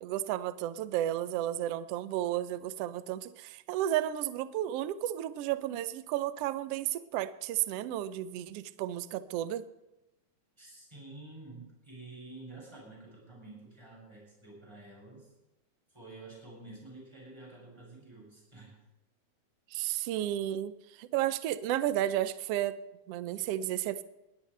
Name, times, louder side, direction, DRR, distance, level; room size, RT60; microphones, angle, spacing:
voice 1, 0.0-9.6 19.7-22.8 23.1-24.0, right 12 dB, 90° right, 13 dB, 1.3 m, -33 dB
voice 2, 10.6-15.3 15.9-18.8, right 2 dB, 10° right, -4 dB, 7.2 m, -49 dB
21.0 x 16.5 x 3.3 m, 0.94 s
omnidirectional pair, 3.6 m